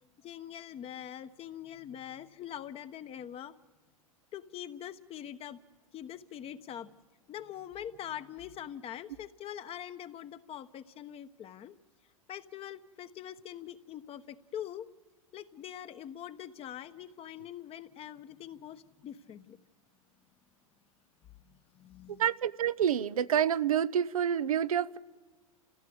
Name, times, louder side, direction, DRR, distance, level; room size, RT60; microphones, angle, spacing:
voice 1, 0.2-3.5 4.3-5.6 5.9-6.9 7.3-11.8 12.3-14.9 15.3-19.6 21.4-22.2, left 10 dB, 30° left, 1.2 m, -43 dB
voice 2, 22.1-25.0, right 9 dB, 75° right, 0.8 m, -28 dB
29.5 x 16.0 x 8.0 m
hypercardioid pair, 95°, 18 cm